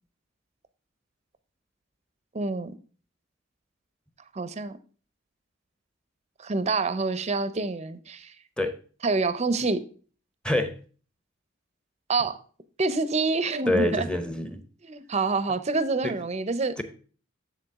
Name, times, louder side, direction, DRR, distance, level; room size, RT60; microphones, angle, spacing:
voice 1, 2.3-2.7 4.3-4.8 6.4-8.3 9.0-9.8 12.1-12.4 12.8-14.1 14.8-16.8, right 3 dB, 35° right, 13 dB, 0.6 m, -27 dB
voice 2, 10.4-10.8 13.7-14.6 16.0-16.1 16.8-16.9, left 1 dB, 5° left, 8 dB, 0.8 m, -26 dB
7.3 x 7.0 x 3.5 m, 0.40 s
head